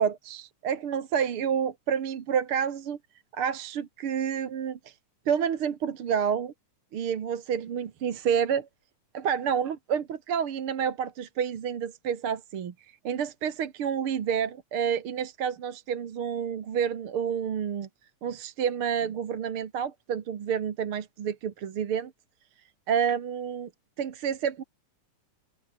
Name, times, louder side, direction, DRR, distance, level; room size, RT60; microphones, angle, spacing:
voice 1, 0.0-3.0 3.3-4.9 5.3-6.5 6.9-8.7 9.1-12.7 13.0-17.9 18.2-22.1 22.9-23.7 24.0-24.6, right 8 dB, 50° right, 2.2 m, -29 dB
open air
omnidirectional pair, 3.4 m